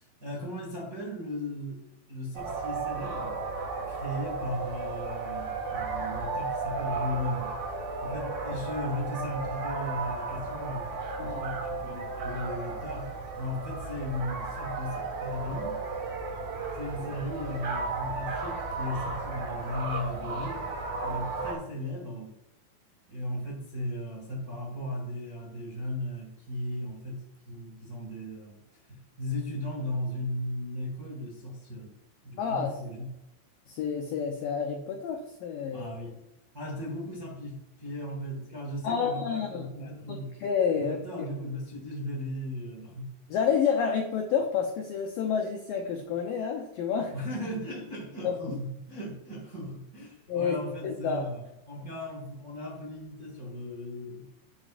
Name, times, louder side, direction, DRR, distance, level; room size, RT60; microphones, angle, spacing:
voice 1, 0.0-1.8 2.1-3.4 3.9-7.5 8.0-10.9 11.2-15.8 16.7-20.6 21.0-22.3 23.1-28.6 28.9-31.9 32.2-33.1 35.7-36.2 36.5-40.3 40.7-43.1 47.1-54.3, left 1 dB, 40° right, -2 dB, 1.3 m, -36 dB
sound 1, 2.3-21.5, right 3 dB, 60° right, 4.0 m, -34 dB
voice 2, 32.4-32.7 33.7-35.9 38.8-41.0 43.3-47.1 48.2-48.6 50.3-50.6 50.8-51.3, left 6 dB, 80° left, 3 dB, 2.0 m, -29 dB
11.5 x 8.4 x 2.5 m, 0.90 s
omnidirectional pair, 5.0 m